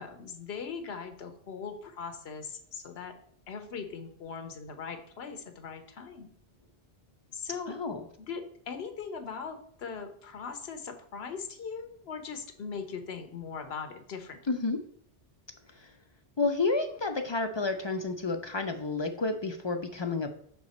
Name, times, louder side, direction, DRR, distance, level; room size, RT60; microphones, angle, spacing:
voice 1, 0.0-3.1 3.5-6.3 7.3-7.7 8.3-14.4, left 6 dB, 70° left, 7 dB, 1.1 m, -40 dB
voice 2, 7.7-8.0 14.5-14.8 15.7-15.9 16.4-20.3, left 3 dB, 50° left, 6 dB, 0.3 m, -30 dB
5.7 x 4.6 x 4.1 m, 0.64 s
omnidirectional pair, 1.1 m